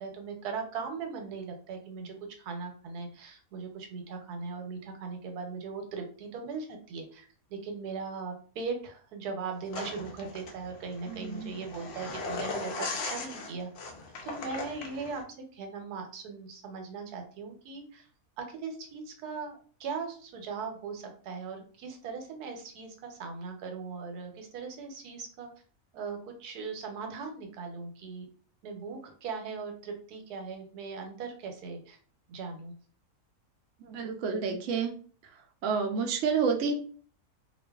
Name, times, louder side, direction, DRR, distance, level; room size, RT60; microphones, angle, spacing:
voice 1, 0.0-13.7 14.2-15.2 15.5-18.1 18.4-25.5 25.9-28.3 28.6-32.0 32.3-32.7, right 5 dB, 85° right, 4 dB, 1.1 m, -39 dB
sound 1, 9.7-15.2, left 3 dB, 75° left, 0.6 m, -38 dB
voice 2, 11.1-11.5 33.8-34.9 35.6-36.7, right 5 dB, 70° right, 4 dB, 0.7 m, -29 dB
2.5 x 2.3 x 2.2 m, 0.43 s
omnidirectional pair, 1.6 m